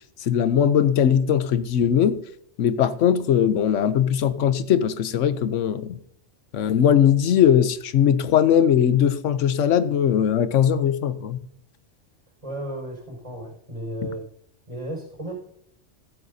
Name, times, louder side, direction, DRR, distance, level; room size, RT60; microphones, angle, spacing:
voice 1, 0.3-2.2 2.6-6.0 6.5-11.4, left 9 dB, 90° left, 1.1 m, -20 dB
voice 2, 12.4-14.2 14.7-15.3, right 1 dB, 25° right, 5.3 m, -34 dB
14.0 x 12.5 x 2.7 m
omnidirectional pair, 1.2 m